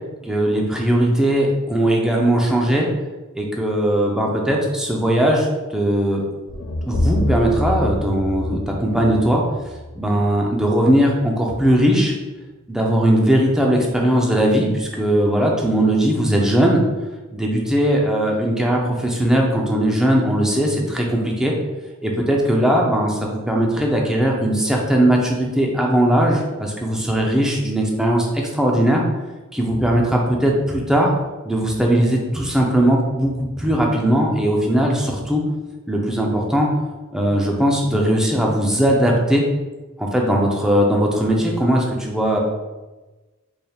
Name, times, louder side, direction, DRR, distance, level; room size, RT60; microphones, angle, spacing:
voice 1, 0.2-2.9 3.3-5.5 5.7-6.3 6.9-9.4 10.0-12.1 12.7-16.8 17.3-21.5 22.0-29.0 29.5-31.1 31.4-35.4 35.9-36.7 37.1-39.4 40.0-42.4, right 1 dB, 5° right, -1 dB, 0.5 m, -19 dB
sound 1, 6.5-10.6, left 1 dB, 75° left, 0.4 m, -26 dB
4.2 x 3.3 x 2.3 m, 1.2 s
head